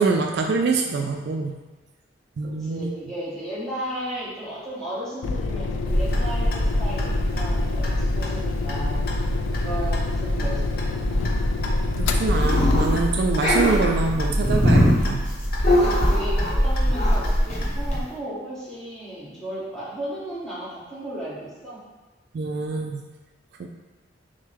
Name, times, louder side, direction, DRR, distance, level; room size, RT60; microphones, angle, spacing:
voice 1, 0.0-1.6 2.4-2.9 12.0-15.3 22.3-23.0 23.6-23.7, right 4 dB, 60° right, 3 dB, 0.3 m, -25 dB
voice 2, 2.4-9.1 9.6-11.3 15.7-21.8, right 1 dB, 5° left, -10 dB, 1.4 m, -35 dB
sound 1, 5.2-13.3, left 3 dB, 80° left, 0.3 m, -27 dB
Clock, 5.9-18.0, equal, 55° left, 0.7 m, -25 dB
sound 2, 12.3-13.0 13.3-16.7 16.9-17.2 17.5-17.7 17.9-18.0, left 1 dB, 35° left, 0.9 m, -21 dB
6.2 x 2.2 x 3.4 m, 1.2 s
head